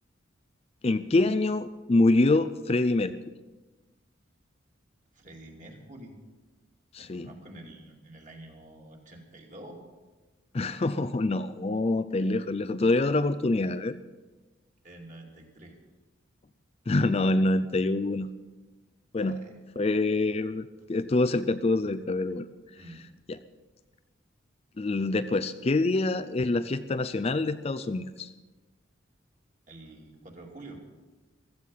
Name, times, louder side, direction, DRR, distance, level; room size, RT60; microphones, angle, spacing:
voice 1, 0.8-3.1 6.9-7.3 10.5-14.0 16.9-18.3 19.1-19.4 19.8-22.5 23.3-23.4 24.8-28.3, left 2 dB, 30° left, 12 dB, 0.4 m, -26 dB
voice 2, 5.1-6.1 7.0-9.8 14.8-15.8 19.2-19.5 22.7-23.0 29.7-30.8, right 1 dB, 40° right, 0 dB, 2.7 m, -47 dB
15.5 x 14.0 x 5.6 m, 1.2 s
head